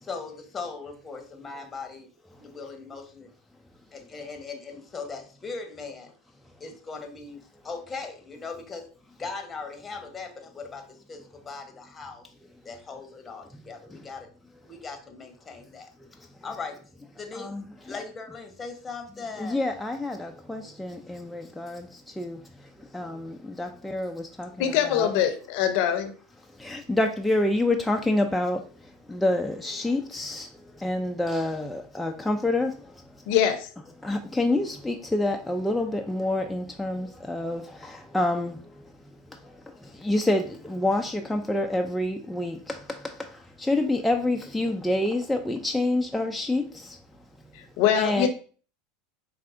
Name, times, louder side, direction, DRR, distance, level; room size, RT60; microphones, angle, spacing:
voice 1, 0.0-2.1 2.4-3.3 3.9-6.1 6.6-8.9 9.2-12.3 12.6-14.3 14.6-15.9 16.4-16.8 17.1-17.5 17.8-19.6, left 4 dB, 20° left, 0.9 m, -39 dB
voice 2, 17.3-18.0 19.4-25.1 26.5-33.0 34.0-38.9 39.3-47.0 48.0-48.3, left 2 dB, 5° left, 0.3 m, -28 dB
voice 3, 24.6-26.1 33.3-33.7 47.5-48.3, left 9 dB, 65° left, 0.6 m, -23 dB
4.5 x 3.3 x 2.5 m
supercardioid pair, 110°, 0 cm